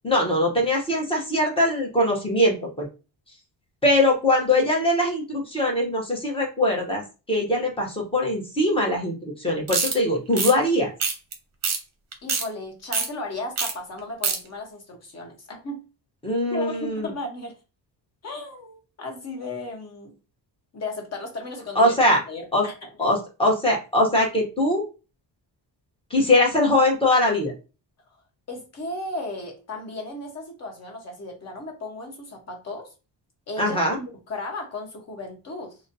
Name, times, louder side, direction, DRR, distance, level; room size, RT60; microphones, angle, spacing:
voice 1, 0.0-2.9 3.8-7.0 7.3-10.9 16.2-17.1 21.7-22.2 22.5-22.6 23.0-24.8 26.1-27.5 33.6-34.0, left 1 dB, 10° left, -1 dB, 0.8 m, -22 dB
sound 1, 9.7-9.9 10.3-10.5 11.0-11.3 11.6-11.8 12.1-12.4 12.9-13.1 13.6-13.7 14.0-14.4, right 5 dB, 35° right, 0.7 m, -24 dB
voice 2, 12.2-15.8 16.5-17.5 18.2-20.1 20.7-22.0 22.3-23.1 28.5-32.9 33.5-35.7, left 2 dB, 35° left, 2 dB, 0.9 m, -35 dB
3.9 x 2.0 x 2.6 m, 0.31 s
wide cardioid pair, 175°, 44 cm